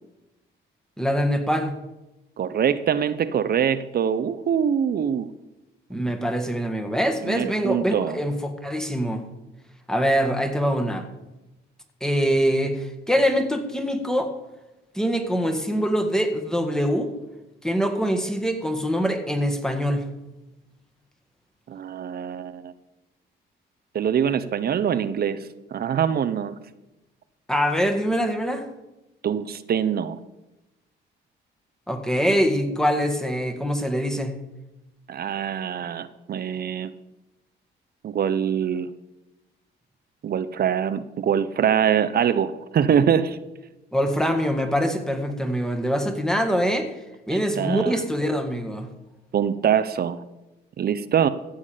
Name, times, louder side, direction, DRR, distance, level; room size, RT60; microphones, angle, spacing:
voice 1, 1.0-1.7 5.9-9.3 9.9-11.1 12.0-14.3 14.9-17.1 17.6-20.1 27.5-28.7 31.9-34.4 43.9-46.9 47.3-48.9, equal, 5° left, 5 dB, 1.7 m, -24 dB
voice 2, 2.4-5.3 7.2-8.2 21.7-22.7 23.9-25.4 25.7-26.5 29.2-30.2 35.1-36.9 38.0-38.9 40.2-43.4 47.3-48.0 49.3-50.2 50.8-51.3, right 8 dB, 50° right, 13 dB, 0.7 m, -24 dB
15.5 x 7.3 x 5.0 m, 1.0 s
cardioid pair, 90°, 20 cm